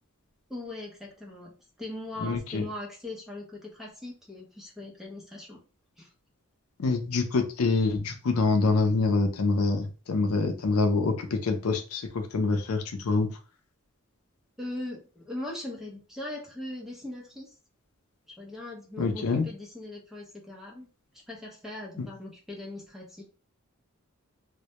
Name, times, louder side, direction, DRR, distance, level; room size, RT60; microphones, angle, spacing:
voice 1, 0.5-5.6 6.0-6.1 14.6-17.5 18.4-20.9 21.3-23.2, left 1 dB, ahead, -1 dB, 0.6 m, -40 dB
voice 2, 2.2-2.7 6.8-13.3 19.0-19.5 22.0-22.1, left 3 dB, 80° left, 5 dB, 0.5 m, -26 dB
2.1 x 2.1 x 2.8 m, 0.35 s
head